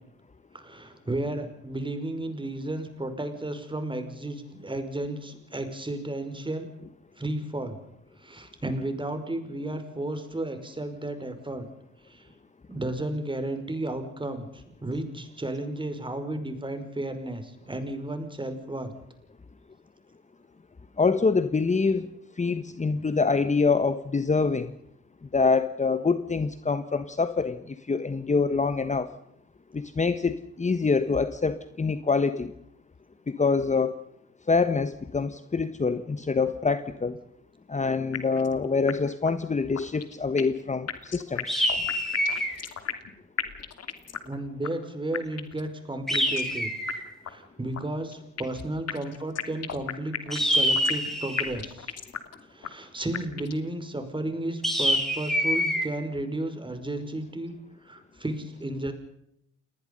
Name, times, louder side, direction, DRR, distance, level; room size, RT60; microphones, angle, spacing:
voice 1, 0.5-6.7 7.2-7.8 8.2-11.7 12.0-12.3 12.7-18.9 44.2-46.7 47.2-52.0 52.5-57.6 57.8-58.9, right 1 dB, 15° right, 8 dB, 5.4 m, -33 dB
voice 2, 21.0-24.7 25.3-29.1 29.7-32.5 33.3-34.0 34.5-37.2 37.7-41.6, left 4 dB, 25° left, 11 dB, 1.4 m, -25 dB
sound 1, 38.1-38.6 38.9-39.0 39.3-39.4 39.8-40.6 40.9-43.1 43.4-44.4 44.6-44.7 45.1-45.7 46.1-46.6 46.9-47.0 47.3-47.4 47.7-48.6 48.9-51.1 51.4-52.4 52.6-52.7 53.1-53.7, left 8 dB, 55° left, 2.9 m, -34 dB
sound 2, 41.5-42.6 46.1-47.1 50.3-51.6 54.6-55.9, equal, ahead, 7.5 m, -26 dB
28.5 x 20.0 x 5.5 m, 0.75 s
cardioid pair, 90°, 30 cm